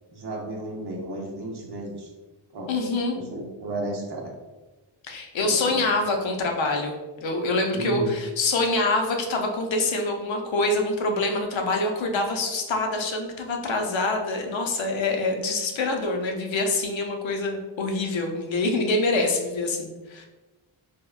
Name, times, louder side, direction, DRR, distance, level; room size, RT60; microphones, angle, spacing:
voice 1, 0.1-2.1 2.5-2.7 3.1-4.3 5.4-5.9 7.7-8.1, right 1 dB, 55° right, -1 dB, 0.7 m, -33 dB
voice 2, 2.7-3.2 5.0-20.3, left 2 dB, 70° left, 3 dB, 0.6 m, -25 dB
3.4 x 2.2 x 2.2 m, 1.1 s
wide cardioid pair, 95°, 48 cm